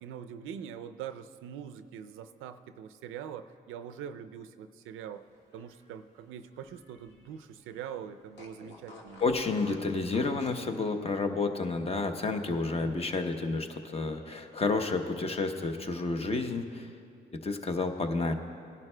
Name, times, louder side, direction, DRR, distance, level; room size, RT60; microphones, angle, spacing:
voice 1, 0.0-5.3 5.5-9.2 12.8-13.0, right 8 dB, 90° right, 9 dB, 0.5 m, -43 dB
Fart, 5.4-7.4 7.7-7.8 8.3-10.7, left 2 dB, 65° left, 1.6 m, -52 dB
voice 2, 9.2-16.9 17.3-18.3, left 3 dB, 30° left, 6 dB, 0.8 m, -30 dB
18.0 x 11.0 x 2.2 m, 2.3 s
cardioid pair, 90°, 20 cm